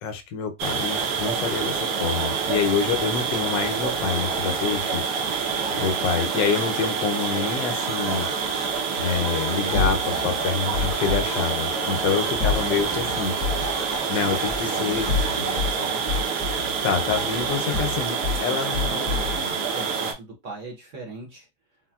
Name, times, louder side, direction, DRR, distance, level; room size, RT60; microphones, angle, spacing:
voice 1, 0.0-5.0 5.8-8.3 9.0-13.4 14.1-15.1 16.8-19.1, left 6 dB, 80° left, 1.3 m, -27 dB
sound 1, 0.6-20.1, right 5 dB, 70° right, 1.3 m, -27 dB
voice 2, 5.6-6.1 14.5-16.1 18.2-21.5, right 1 dB, 55° right, 1.0 m, -39 dB
sound 2, 7.6-15.5, equal, 30° right, 0.8 m, -37 dB
sound 3, 9.7-11.3 12.4-13.7 14.9-15.7 16.1-18.4 18.7-19.4, left 4 dB, 55° left, 1.2 m, -28 dB
4.0 x 2.1 x 2.3 m
omnidirectional pair, 1.9 m